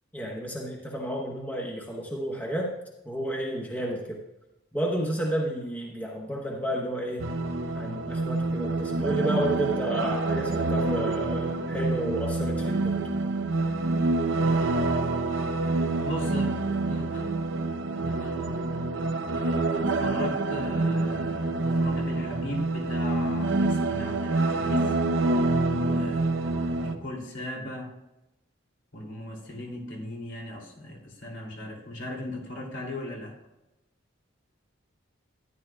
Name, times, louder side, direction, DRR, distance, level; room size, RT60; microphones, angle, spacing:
voice 1, 0.1-2.7 3.0-4.2 4.7-7.3 7.7-13.0, right 1 dB, 10° left, -2 dB, 1.1 m, -31 dB
sound 1, 7.2-26.9, right 2 dB, 70° right, 0.8 m, -27 dB
voice 2, 16.1-16.5 16.9-17.2 18.1-18.3 19.3-25.0 25.7-26.2 26.8-27.9 28.9-33.4, left 1 dB, 70° left, -1 dB, 2.8 m, -38 dB
13.5 x 10.5 x 2.3 m, 0.94 s
head